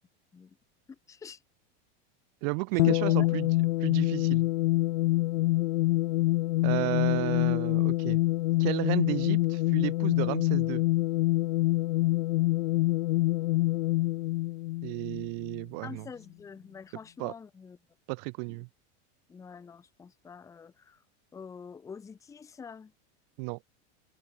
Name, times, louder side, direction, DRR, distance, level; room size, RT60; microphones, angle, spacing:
voice 1, 0.9-1.4 2.7-3.3 15.8-17.8 18.5-18.6 19.3-21.0 21.3-22.9, left 6 dB, 10° left, 1.1 m, -46 dB
voice 2, 2.4-3.5 3.8-4.5 6.6-8.2 8.6-10.8 14.8-16.0 17.2-17.3 18.1-18.7 23.4-23.6, right 40 dB or more, 35° right, 0.7 m, -33 dB
sound 1, 2.8-15.6, left 19 dB, 80° left, 0.8 m, -26 dB
supercardioid pair, 175°, 34 cm